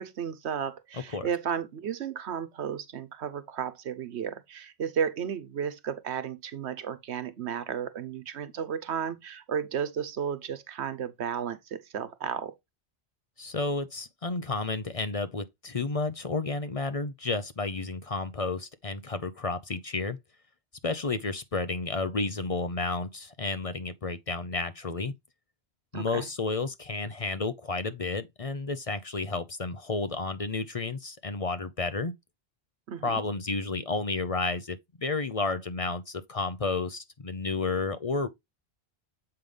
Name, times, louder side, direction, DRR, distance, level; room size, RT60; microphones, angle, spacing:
voice 1, 0.0-12.5 25.9-26.3 32.9-33.2, right 8 dB, 90° right, 1.1 m, -33 dB
voice 2, 13.4-20.2 20.8-25.1 25.9-32.1 33.0-38.3, left 3 dB, 40° left, 0.7 m, -31 dB
7.8 x 5.4 x 3.3 m
omnidirectional pair, 1.1 m